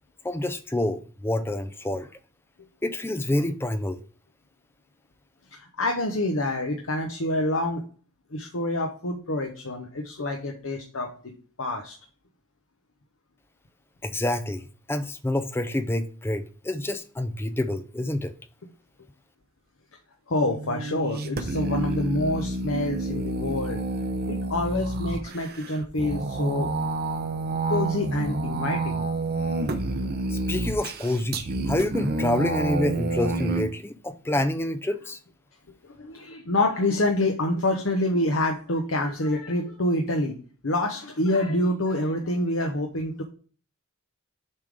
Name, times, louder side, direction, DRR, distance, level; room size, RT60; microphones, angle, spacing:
voice 1, 0.2-2.1 2.8-4.0 14.0-18.3 30.3-35.2, left 1 dB, 10° left, 0.4 m, -28 dB
voice 2, 5.5-7.8 8.3-11.1 11.6-11.9 20.3-23.8 24.3-26.7 27.7-29.0 35.8-40.3 40.6-43.2, left 1 dB, 65° left, 0.9 m, -27 dB
sound 1, 20.4-33.6, right 2 dB, 45° right, 0.7 m, -29 dB
7.3 x 3.7 x 4.8 m
head